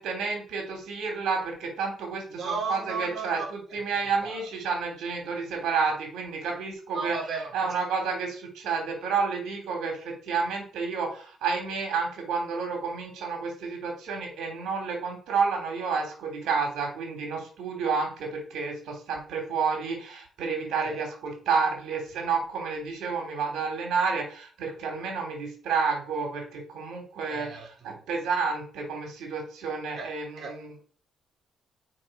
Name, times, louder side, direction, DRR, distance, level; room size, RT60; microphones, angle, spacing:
voice 1, 0.0-7.2 7.5-30.7, right 5 dB, 85° right, 2 dB, 3.6 m, -30 dB
voice 2, 2.3-3.4 3.9-4.4 6.9-7.7 20.9-21.0 27.3-28.0 30.0-30.1 30.4-30.5, right 4 dB, 55° right, 1 dB, 3.4 m, -35 dB
7.7 x 5.9 x 5.3 m, 0.44 s
cardioid pair, 90°, 0 cm